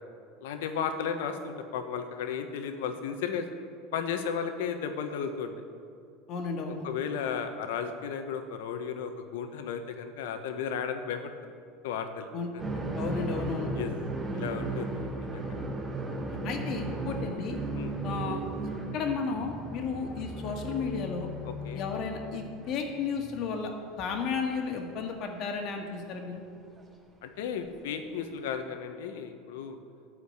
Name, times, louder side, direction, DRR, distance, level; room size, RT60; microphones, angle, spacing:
voice 1, 0.4-3.5 3.9-5.5 6.8-11.3 11.8-12.3 13.7-13.9 14.3-15.5 17.7-17.9 21.4-21.8 27.2-29.8, left 7 dB, 85° left, 7 dB, 1.1 m, -34 dB
voice 2, 6.3-6.9 12.3-12.5 13.0-13.7 16.3-17.6 18.0-18.4 18.9-21.3 21.7-23.7 24.0-26.4, left 5 dB, 50° left, 3 dB, 1.8 m, -33 dB
sound 1, 12.6-23.6 23.9-24.0 25.2-25.3 26.8-26.9 28.4-28.5, right 2 dB, 20° right, 2.7 m, -36 dB
13.0 x 5.1 x 8.7 m, 2.4 s
supercardioid pair, 120°, 0 cm